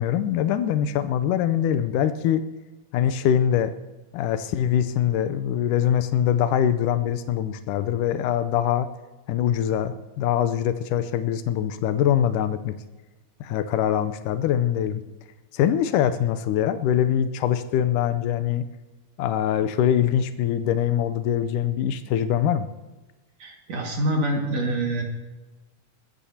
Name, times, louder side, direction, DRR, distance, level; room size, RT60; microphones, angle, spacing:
voice 1, 0.0-2.4 2.9-3.7 4.1-8.9 9.3-12.7 13.4-15.0 15.5-18.6 19.2-22.7, left 10 dB, 90° left, 11 dB, 2.3 m, -23 dB
voice 2, 23.4-25.0, right 1 dB, 55° right, 1 dB, 3.1 m, -25 dB
22.5 x 14.0 x 2.8 m, 1.1 s
omnidirectional pair, 3.6 m